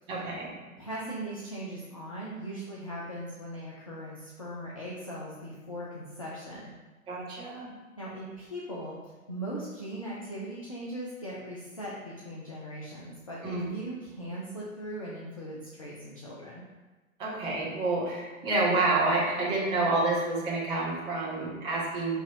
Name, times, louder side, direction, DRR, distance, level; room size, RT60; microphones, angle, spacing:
voice 1, 0.1-0.5 7.1-7.7 13.4-13.6 17.2-22.1, right 2 dB, 10° right, -6 dB, 0.7 m, -28 dB
voice 2, 0.8-6.7 8.0-16.6, right 1 dB, 25° left, -6 dB, 0.3 m, -39 dB
5.5 x 2.8 x 2.5 m, 1.2 s
figure-of-eight pair, 120°, 42 cm